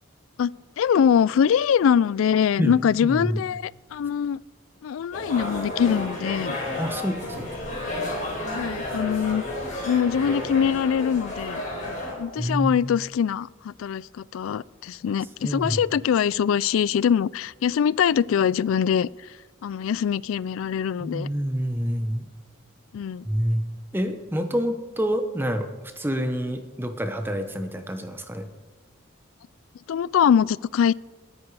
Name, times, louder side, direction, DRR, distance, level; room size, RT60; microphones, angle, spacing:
voice 1, 0.8-4.4 4.8-6.6 8.5-9.4 9.8-11.6 12.2-19.1 19.6-21.3 22.9-23.2 29.9-30.9, left 8 dB, 80° left, 23 dB, 0.3 m, -23 dB
sound 1, 5.1-12.1, left 1 dB, 35° left, 4.6 m, -31 dB
voice 2, 6.8-7.6 12.4-12.7 15.4-15.8 21.0-22.2 23.2-23.6 23.9-28.5, equal, 10° right, 7 dB, 0.9 m, -27 dB
18.5 x 9.7 x 4.8 m, 1.3 s
head